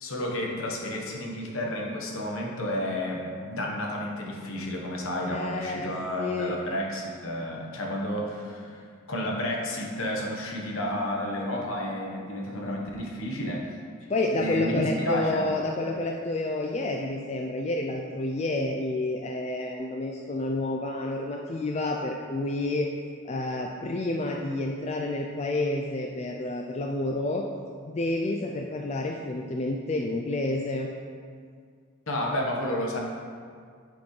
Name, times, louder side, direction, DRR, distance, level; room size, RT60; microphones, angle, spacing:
voice 1, 0.0-13.6 14.0-14.1 14.3-15.5 32.1-33.0, left 1 dB, 65° left, -1 dB, 1.2 m, -31 dB
voice 2, 5.3-5.9 6.2-6.6 14.1-22.9 23.3-27.4 27.9-30.9, left 2 dB, 30° left, 1 dB, 0.3 m, -29 dB
10.0 x 5.2 x 3.2 m, 2.1 s
head